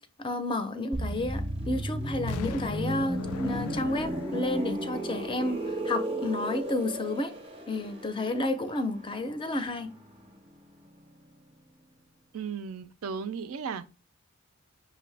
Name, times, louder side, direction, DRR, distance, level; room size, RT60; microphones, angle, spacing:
voice 1, 0.2-7.3 7.7-9.9, left 2 dB, 25° left, 0.4 m, -31 dB
sound 1, 0.9-10.6 10.8-11.1, right 1 dB, 25° right, 0.5 m, -35 dB
Explosion, 2.3-6.2 6.7-6.8, left 7 dB, 85° left, 0.3 m, -42 dB
voice 2, 12.3-13.9, right 6 dB, 75° right, 0.4 m, -35 dB
5.9 x 2.7 x 3.3 m
head